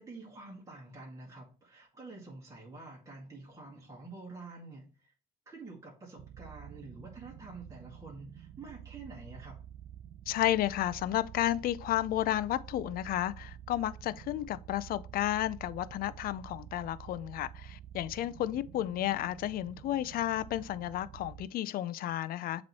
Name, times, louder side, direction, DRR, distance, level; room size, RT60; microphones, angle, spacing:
voice 1, 0.0-5.1 5.5-9.6, right 3 dB, 20° right, 1.9 m, -48 dB
sound 1, 6.2-21.5, right 10 dB, 65° right, 0.5 m, -49 dB
voice 2, 10.3-22.6, left 13 dB, 60° left, 0.5 m, -32 dB
7.5 x 3.1 x 4.1 m
cardioid pair, 110°, 17 cm